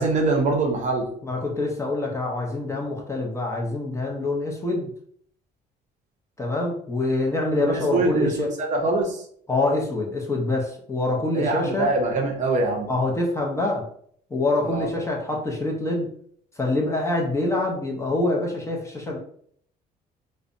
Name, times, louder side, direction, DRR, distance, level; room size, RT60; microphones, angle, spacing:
voice 1, 0.0-1.1 7.6-9.2 11.3-12.9 14.6-14.9, right 3 dB, 45° right, 2 dB, 0.6 m, -24 dB
voice 2, 1.2-4.9 6.4-8.5 9.5-11.9 12.9-13.9 14.3-16.1 16.6-19.2, left 2 dB, 15° left, -1 dB, 0.6 m, -25 dB
2.6 x 2.1 x 2.5 m, 0.62 s
cardioid pair, 110°, 17 cm